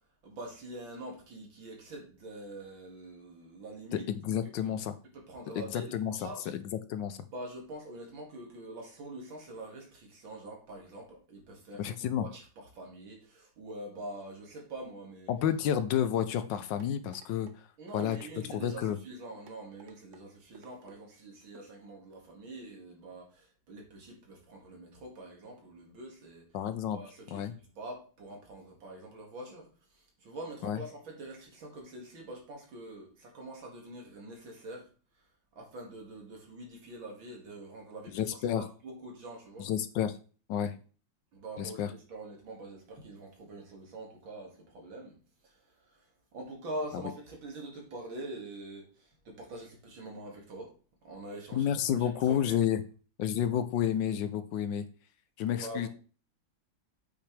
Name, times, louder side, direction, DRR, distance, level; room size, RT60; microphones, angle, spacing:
voice 1, 0.2-4.1 4.6-4.7 5.3-6.5 7.3-11.9 12.2-15.3 17.8-26.5 26.9-27.5 27.8-29.7 29.9-34.9 35.6-39.7 41.3-45.1 45.4-45.6 45.9-46.1 46.3-50.7 51.0-52.6 55.6-55.9, right 1 dB, 85° right, 0 dB, 3.0 m, -45 dB
voice 2, 3.9-4.9 5.5-7.2 11.8-12.3 15.3-17.5 17.9-18.2 18.4-19.0 26.5-27.0 27.3-27.5 30.6-30.8 38.1-38.7 39.6-40.2 40.5-40.8 41.6-41.9 51.5-52.8 53.2-54.9 55.4-55.9, left 9 dB, 75° left, 12 dB, 1.3 m, -30 dB
sound 1, 16.8-17.6 17.9-18.3 18.9-19.0 19.5-20.2 20.5-21.0 21.5-21.7 22.1-22.2, right 5 dB, 50° right, 1.0 m, -55 dB
8.2 x 6.1 x 3.3 m, 0.38 s
omnidirectional pair, 2.1 m